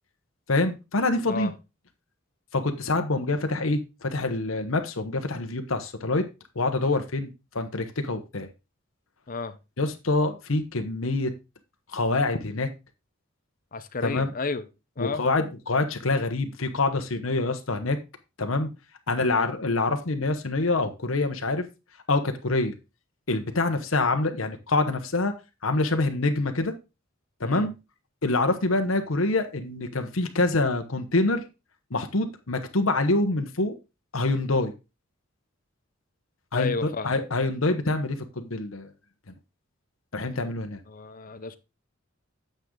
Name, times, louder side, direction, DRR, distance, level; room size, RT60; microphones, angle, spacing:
voice 1, 0.5-1.5 2.5-6.2 6.5-8.5 9.8-11.3 11.9-12.7 14.0-14.3 15.0-18.0 18.4-18.7 19.1-21.6 22.1-22.7 23.3-25.3 25.6-26.7 27.4-27.7 28.2-31.4 31.9-33.8 34.1-34.7 36.5-38.9 40.1-40.8, left 2 dB, 85° left, 1.1 m, -26 dB
voice 2, 13.7-14.7 15.0-15.2 19.2-19.5 27.4-27.7 36.5-37.2 40.9-41.6, left 4 dB, 45° left, 0.8 m, -32 dB
9.1 x 6.7 x 3.8 m
head